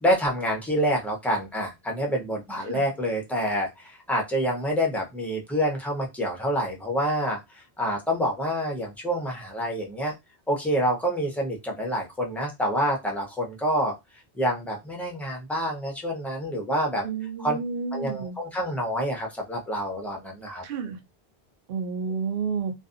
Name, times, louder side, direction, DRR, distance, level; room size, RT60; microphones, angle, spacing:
voice 1, 0.0-10.1 10.5-13.9 14.4-17.0 17.4-17.6 17.9-20.6, equal, ahead, 0.5 m, -27 dB
voice 2, 17.0-18.4 20.6-21.0 21.7-22.7, right 5 dB, 65° right, 0.8 m, -30 dB
2.5 x 2.3 x 2.5 m
omnidirectional pair, 1.1 m